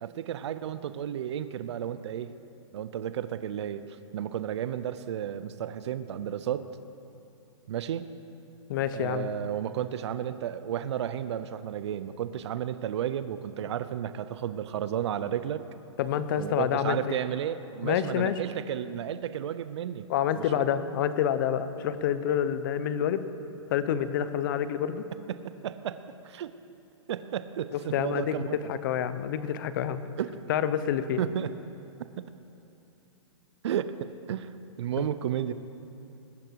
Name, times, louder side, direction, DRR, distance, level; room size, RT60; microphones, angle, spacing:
voice 1, 0.0-2.3 2.7-3.8 4.1-6.7 7.7-8.1 8.9-15.6 16.4-20.1 20.3-20.4 25.3-26.0 26.2-26.5 27.1-28.5 30.2-30.4 31.2-31.6 32.2-32.3 33.6-33.9 34.3-34.5 34.8-35.5, right 10 dB, 60° right, 12 dB, 0.7 m, -32 dB
voice 2, 8.7-9.3 16.0-17.2 17.8-18.4 20.1-23.2 23.7-25.0 27.9-30.0 30.5-31.2 35.0-35.1, left 9 dB, 40° left, 12 dB, 0.7 m, -28 dB
21.0 x 10.0 x 4.7 m, 2.8 s
hypercardioid pair, 155°, 16 cm